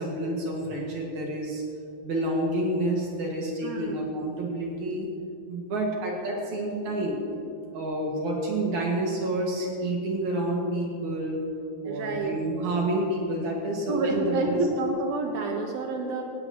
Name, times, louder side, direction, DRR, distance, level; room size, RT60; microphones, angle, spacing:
voice 1, 0.0-1.6 2.0-5.1 5.5-7.2 7.7-11.5 11.8-14.7, right 1 dB, 50° right, -2 dB, 2.6 m, -29 dB
voice 2, 3.6-4.0 11.8-12.4 13.9-16.2, right 3 dB, 70° right, 2 dB, 2.6 m, -28 dB
18.5 x 16.0 x 3.0 m, 2.5 s
omnidirectional pair, 5.2 m